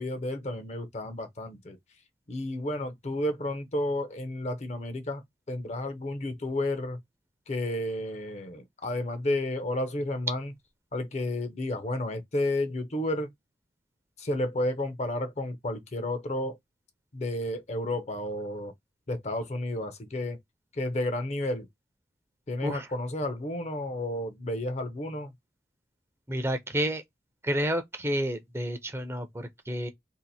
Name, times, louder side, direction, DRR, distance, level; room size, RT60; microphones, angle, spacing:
voice 1, 0.0-1.8 2.3-7.0 7.5-10.5 10.9-13.3 14.2-16.6 17.1-18.7 19.1-20.4 20.7-21.7 22.5-25.3, left 1 dB, 40° left, 0.6 m, -31 dB
voice 2, 26.3-27.0 27.4-29.9, equal, 15° right, 0.5 m, -30 dB
2.7 x 2.5 x 4.0 m
head